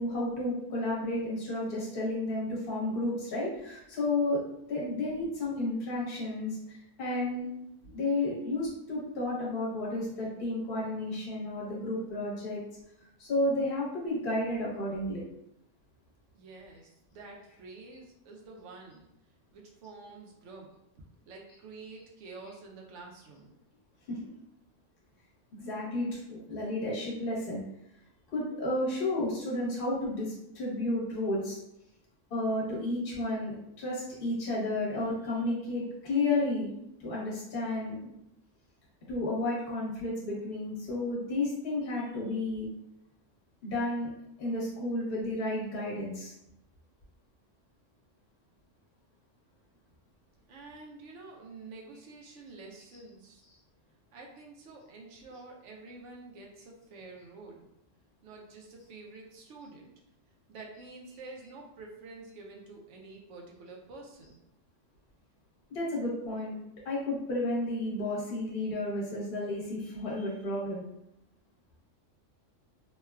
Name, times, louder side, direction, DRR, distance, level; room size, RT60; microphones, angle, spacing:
voice 1, 0.0-4.4 4.7-7.5 7.8-12.6 13.2-15.2 24.1-24.2 25.5-27.6 28.3-31.6 32.3-38.1 39.1-42.7 43.6-44.1 44.4-46.3 65.7-66.6 66.8-70.8, left 2 dB, 50° left, -6 dB, 1.1 m, -32 dB
voice 2, 16.3-19.0 19.5-20.7 21.3-23.5 50.5-53.4 54.1-57.7 58.2-59.9 60.5-64.4, right 3 dB, 75° right, 0 dB, 0.9 m, -48 dB
3.1 x 2.2 x 2.3 m, 0.82 s
omnidirectional pair, 1.3 m